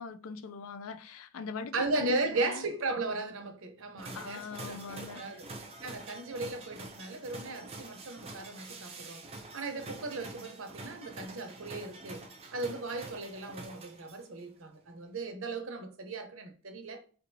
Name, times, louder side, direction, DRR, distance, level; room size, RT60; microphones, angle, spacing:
voice 1, 0.0-2.6 4.1-5.3, left 5 dB, 75° left, 0.4 m, -42 dB
voice 2, 1.7-5.5 5.8-17.0, right 3 dB, 70° right, 0.8 m, -36 dB
sound 1, 4.0-14.4, right 2 dB, 25° right, 0.5 m, -46 dB
4.3 x 2.5 x 2.7 m
head